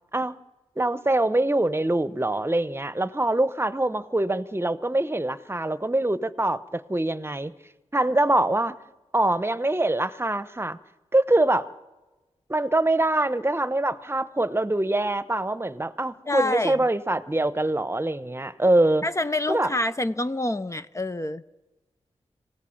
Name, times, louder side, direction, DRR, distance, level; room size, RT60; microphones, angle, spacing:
voice 1, 0.8-7.5 7.9-8.7 9.1-10.8 11.1-11.7 12.5-19.0 19.5-19.7, right 1 dB, 20° right, 15 dB, 1.0 m, -24 dB
voice 2, 16.3-16.8 19.0-21.4, left 2 dB, 25° left, 11 dB, 0.7 m, -27 dB
26.0 x 17.5 x 7.2 m, 1.1 s
wide cardioid pair, 70°, 12 cm